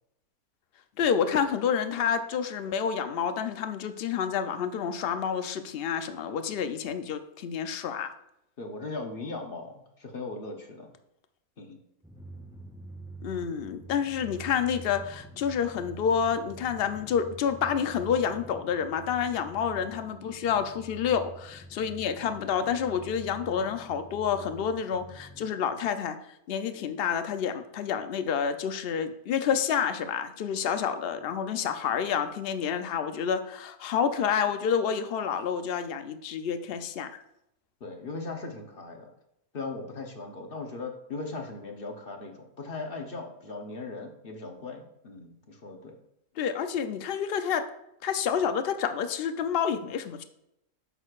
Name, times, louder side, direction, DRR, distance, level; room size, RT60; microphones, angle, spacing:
voice 1, 1.0-8.1 13.2-26.2 26.5-37.2 46.4-47.7 48.0-50.2, left 7 dB, 70° left, 9 dB, 0.5 m, -29 dB
voice 2, 8.6-10.9 11.6-11.8 37.8-39.1 39.5-45.9, left 3 dB, 40° left, 3 dB, 1.0 m, -38 dB
Drum, 12.0-25.5, right 2 dB, 5° right, 1.2 m, -46 dB
8.9 x 6.3 x 2.4 m, 0.80 s
omnidirectional pair, 1.6 m